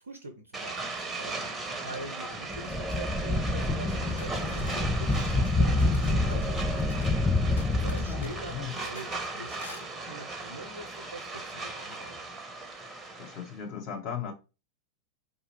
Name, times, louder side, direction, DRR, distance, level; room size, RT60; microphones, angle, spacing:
voice 1, 0.0-7.1 7.7-12.2, right 2 dB, 70° right, 0.6 m, -44 dB
sound 1, 0.5-13.6, right 3 dB, 10° right, 0.7 m, -38 dB
sound 2, 2.5-8.6, left 2 dB, 5° left, 0.3 m, -27 dB
sound 3, 3.9-7.2 7.6-9.3 9.6-9.9, left 3 dB, 75° left, 0.6 m, -49 dB
voice 2, 7.7-8.7 13.2-14.3, left 8 dB, 40° left, 1.0 m, -37 dB
4.1 x 2.6 x 2.8 m
figure-of-eight pair, 90°, 0 cm